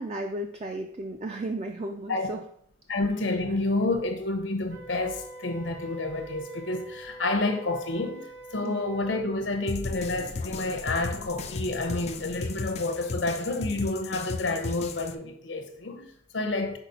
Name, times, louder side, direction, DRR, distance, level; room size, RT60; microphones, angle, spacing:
voice 1, 0.0-2.4 8.6-8.8, right 1 dB, 35° right, 0.4 m, -34 dB
voice 2, 2.9-16.8, left 2 dB, 80° left, 1.0 m, -29 dB
Wind instrument woodwind instrument, 4.7-9.2, right 1 dB, 75° right, 0.9 m, -45 dB
sound 1, 9.7-15.1, left 4 dB, 35° left, 0.4 m, -35 dB
6.0 x 4.6 x 4.1 m
head